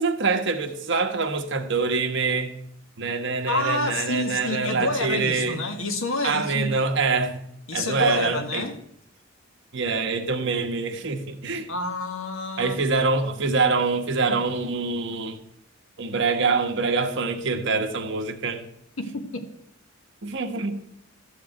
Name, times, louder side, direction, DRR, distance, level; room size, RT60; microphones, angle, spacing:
voice 1, 0.0-2.5 3.0-5.6 6.2-7.4 7.7-8.6 9.7-11.7 12.6-15.4 16.0-18.6 20.2-20.7, right 4 dB, 60° right, 1.3 m, -25 dB
voice 2, 3.5-6.7 7.7-8.7 11.7-12.8 14.3-14.4 19.0-19.5, left 2 dB, 80° left, 1.6 m, -28 dB
14.0 x 5.1 x 9.1 m
head